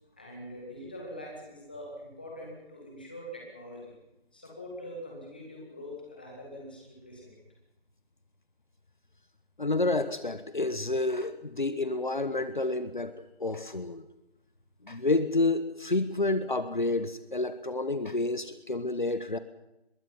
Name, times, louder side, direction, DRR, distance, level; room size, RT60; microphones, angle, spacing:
voice 1, 0.2-3.9 4.3-7.4, equal, 10° left, -2 dB, 1.9 m, -43 dB
voice 2, 9.6-13.1 13.4-14.0 14.8-19.4, left 2 dB, 50° left, 11 dB, 1.2 m, -29 dB
23.5 x 21.5 x 5.8 m, 0.90 s
figure-of-eight pair, 180°, 32 cm